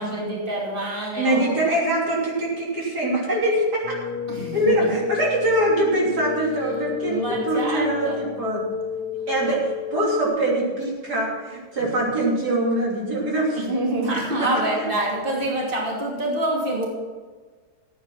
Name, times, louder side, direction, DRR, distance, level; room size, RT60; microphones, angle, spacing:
voice 1, 0.0-1.5 4.3-4.9 7.0-8.2 13.5-16.9, right 1 dB, 30° right, -3 dB, 2.9 m, -26 dB
voice 2, 1.1-4.0 4.3-8.7 9.3-13.7 14.4-14.5 14.8-14.9, right 1 dB, 80° right, -4 dB, 3.8 m, -23 dB
sound 1, 3.8-10.3, left 8 dB, 90° left, 1.3 m, -32 dB
14.0 x 8.8 x 5.7 m, 1.4 s
omnidirectional pair, 1.7 m